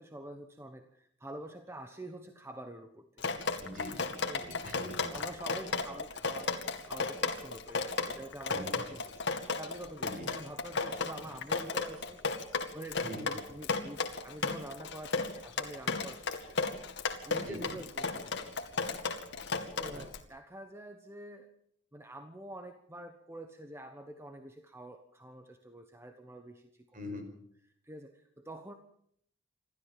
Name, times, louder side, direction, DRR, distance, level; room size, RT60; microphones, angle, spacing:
voice 1, 0.0-3.3 4.3-4.5 5.1-6.5 6.8-12.2 12.5-18.6 19.7-21.5 21.9-27.0 27.8-28.7, right 1 dB, 10° right, 7 dB, 1.1 m, -47 dB
Drip, 3.2-20.2, left 4 dB, 55° left, 2.3 m, -34 dB
voice 2, 3.6-4.1 4.4-5.2 8.5-8.8 10.0-10.3 11.2-11.3 13.0-13.3 17.3-17.8 19.8-20.1 26.9-27.3, equal, 40° right, 6 dB, 5.3 m, -43 dB
27.5 x 13.5 x 7.5 m, 0.69 s
head